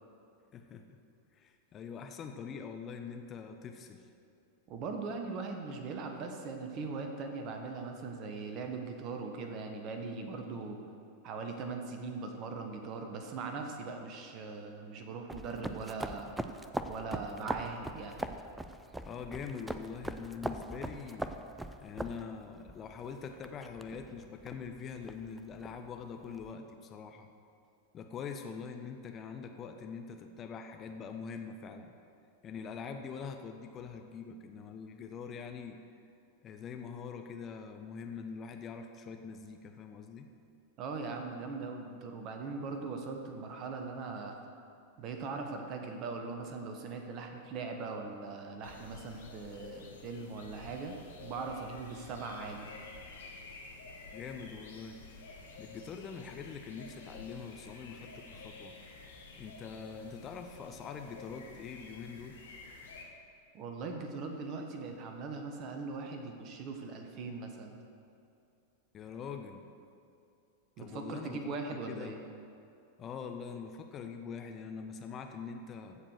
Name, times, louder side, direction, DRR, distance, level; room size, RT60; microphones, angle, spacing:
voice 1, 0.5-1.0 1.3-4.1 19.0-21.3 21.8-27.3 27.9-31.9 32.4-35.8 36.4-40.3 49.8-49.9 54.1-55.0 55.6-58.7 59.4-62.4 68.9-69.6 70.8-71.4 71.7-72.2 73.0-76.0, left 6 dB, 30° left, 5 dB, 0.7 m, -44 dB
voice 2, 4.7-10.8 11.2-16.3 16.8-18.2 40.8-44.4 45.0-52.7 63.5-67.8 70.8-72.2, right 4 dB, 35° right, 4 dB, 1.3 m, -40 dB
sound 1, 15.3-26.5, right 1 dB, 5° right, 0.5 m, -42 dB
sound 2, 48.6-63.0, left 3 dB, 65° left, 1.6 m, -50 dB
14.5 x 5.0 x 6.5 m, 2.5 s
figure-of-eight pair, 90°, 0 cm